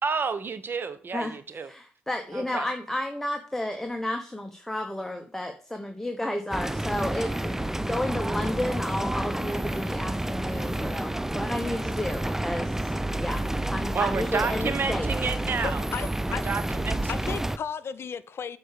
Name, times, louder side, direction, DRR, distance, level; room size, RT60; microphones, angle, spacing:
voice 1, 0.0-1.7 2.3-2.7 13.9-15.8 16.3-17.1, right 5 dB, 50° right, 11 dB, 1.2 m, -30 dB
voice 2, 1.7-12.9 13.2-15.1, left 1 dB, 5° left, 4 dB, 1.2 m, -32 dB
sound 1, 6.5-17.6, right 1 dB, 10° right, 0.5 m, -29 dB
voice 3, 15.6-16.4 17.1-18.6, left 7 dB, 60° left, 15 dB, 0.7 m, -34 dB
7.9 x 4.7 x 6.7 m, 0.42 s
supercardioid pair, 60°, 5 cm